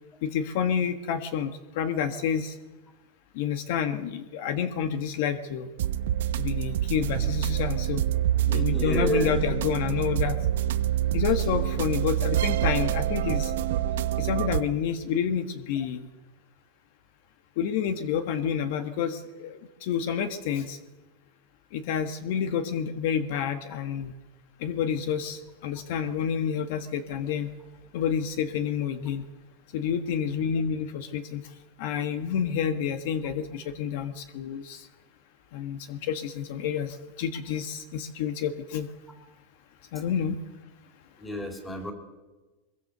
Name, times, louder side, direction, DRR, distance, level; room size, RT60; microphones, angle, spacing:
voice 1, 0.2-2.5 3.3-5.7 6.3-8.0 8.5-10.4 11.1-13.5 14.2-16.1 17.6-20.8 21.7-24.1 24.6-27.5 27.9-29.2 29.7-31.4 31.8-34.9 35.5-38.9 39.9-40.4, left 8 dB, 60° left, 9 dB, 1.5 m, -29 dB
sound 1, 5.8-14.6, right 11 dB, 80° right, 1.1 m, -26 dB
voice 2, 8.5-9.4 41.2-41.9, equal, 10° left, 4 dB, 3.7 m, -30 dB
23.0 x 22.5 x 6.7 m, 1.2 s
supercardioid pair, 155°, 0 cm